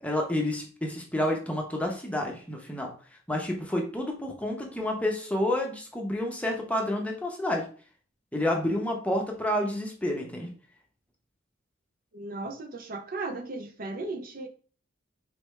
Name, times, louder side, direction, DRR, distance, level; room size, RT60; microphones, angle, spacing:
voice 1, 0.0-2.9 3.3-7.6 8.3-10.5, left 1 dB, 5° left, 1 dB, 0.7 m, -29 dB
voice 2, 12.1-14.5, right 2 dB, 50° right, 4 dB, 0.6 m, -36 dB
4.4 x 3.4 x 3.1 m, 0.41 s
head